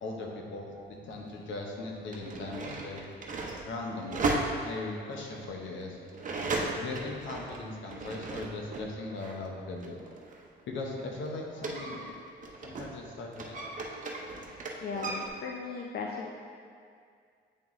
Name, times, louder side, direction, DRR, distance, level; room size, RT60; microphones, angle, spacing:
voice 1, 0.0-3.0 3.6-4.2 4.6-6.0 6.7-10.0 10.7-12.1 12.6-13.7, left 2 dB, 70° left, 0 dB, 0.9 m, -39 dB
sound 1, 0.9-1.0 1.9-8.9 9.2-13.0 13.3-15.3, right 3 dB, 40° right, 0.7 m, -36 dB
voice 2, 14.8-16.3, left 4 dB, 50° left, 0 dB, 0.5 m, -37 dB
8.6 x 3.5 x 3.1 m, 2.2 s
cardioid pair, 90°, 20 cm